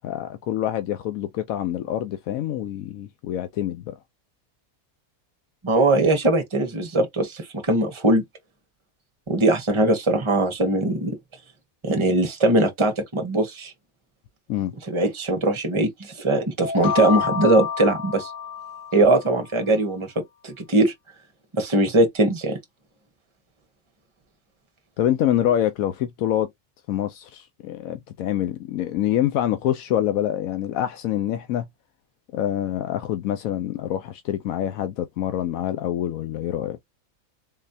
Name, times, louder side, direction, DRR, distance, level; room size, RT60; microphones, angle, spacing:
voice 1, 0.0-3.9 14.5-14.7 25.0-26.5 26.9-31.6 32.3-36.8, left 11 dB, 80° left, 1.0 m, -26 dB
voice 2, 5.6-8.2 9.3-11.2 11.8-13.7 14.8-18.3 18.9-20.1 20.4-20.9 21.5-22.6, right 2 dB, 20° right, 1.2 m, -21 dB
sound 1, 16.6-19.4, left 7 dB, 60° left, 0.6 m, -28 dB
4.0 x 3.2 x 2.6 m
omnidirectional pair, 1.4 m